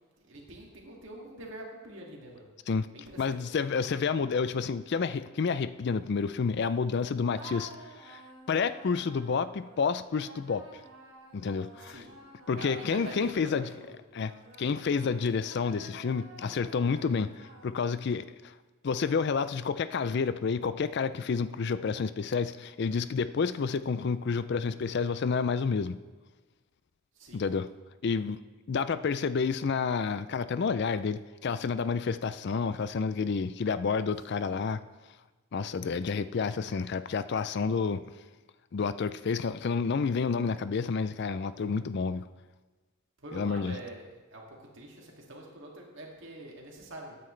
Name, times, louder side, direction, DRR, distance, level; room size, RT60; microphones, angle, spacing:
voice 1, 0.2-2.5 2.9-3.4 11.9-12.1 12.5-13.9 27.2-27.4 34.3-34.4 43.2-47.3, right 1 dB, 60° right, -1 dB, 2.4 m, -45 dB
voice 2, 3.2-8.2 8.5-10.8 11.3-12.0 12.5-13.7 14.1-14.3 14.6-18.5 18.8-26.0 27.3-27.7 28.0-28.4 28.7-34.8 35.5-38.0 38.7-42.3 43.3-43.8, left 5 dB, 50° left, 14 dB, 0.4 m, -29 dB
sound 1, 7.3-13.6 14.1-18.1, right 2 dB, 85° right, 2.9 m, -51 dB
16.0 x 9.5 x 3.3 m, 1.2 s
head